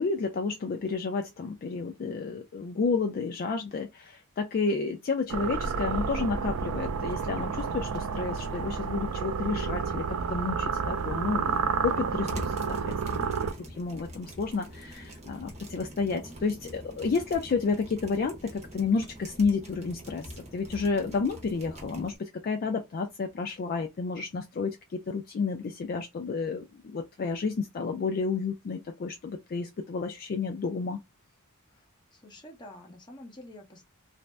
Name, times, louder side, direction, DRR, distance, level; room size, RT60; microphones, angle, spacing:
voice 1, 0.0-13.3 13.8-31.0, left 4 dB, 40° left, 0.3 m, -31 dB
sound 1, 5.3-13.5, right 5 dB, 70° right, 0.4 m, -30 dB
sound 2, 10.8-22.2, equal, 30° right, 0.9 m, -44 dB
voice 2, 31.7-33.8, left 1 dB, 20° left, 0.9 m, -48 dB
2.5 x 2.0 x 3.2 m
head